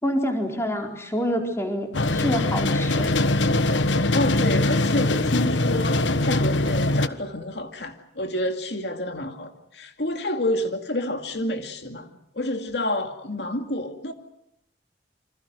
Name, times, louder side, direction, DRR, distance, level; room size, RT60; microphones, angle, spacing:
voice 1, 0.0-3.1, equal, 15° left, 3 dB, 4.3 m, -27 dB
sound 1, 1.9-7.1, left 2 dB, 85° left, 1.3 m, -22 dB
voice 2, 4.1-12.1 12.3-14.1, left 1 dB, 65° left, 6 dB, 2.4 m, -28 dB
29.0 x 26.0 x 6.5 m, 0.76 s
head